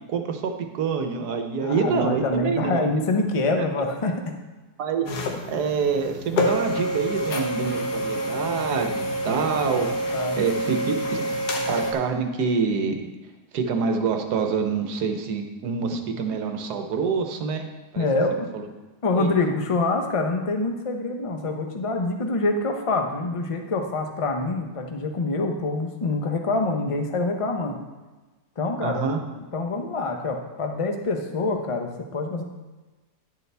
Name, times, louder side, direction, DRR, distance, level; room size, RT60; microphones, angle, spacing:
voice 1, 0.1-2.9 3.6-3.7 4.8-10.0 10.4-11.3 11.7-13.1 13.5-17.7 17.9-18.6 19.1-19.3 28.8-29.2, right 5 dB, 75° right, 5 dB, 1.4 m, -26 dB
voice 2, 1.6-4.3 9.7-9.9 10.1-10.4 18.0-18.7 19.0-27.8 28.6-29.1 29.5-32.4, left 2 dB, 35° left, 4 dB, 0.5 m, -26 dB
sound 1, 5.1-11.9, equal, 75° left, 1.6 m, -27 dB
11.0 x 6.8 x 3.4 m, 1.2 s
omnidirectional pair, 1.8 m